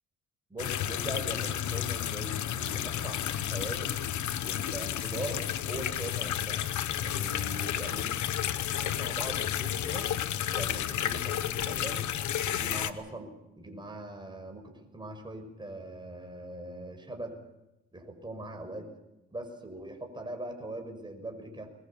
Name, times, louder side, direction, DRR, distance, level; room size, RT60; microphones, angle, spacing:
voice 1, 0.5-4.0 4.4-6.7 7.0-8.1 8.8-10.1 10.5-12.1 12.4-17.4 17.9-18.9 19.3-21.7, right 1 dB, 15° right, 4 dB, 5.9 m, -41 dB
sound 1, 0.6-12.9, left 11 dB, 70° left, 1.2 m, -32 dB
22.0 x 22.0 x 7.3 m, 0.95 s
cardioid pair, 90°, 30 cm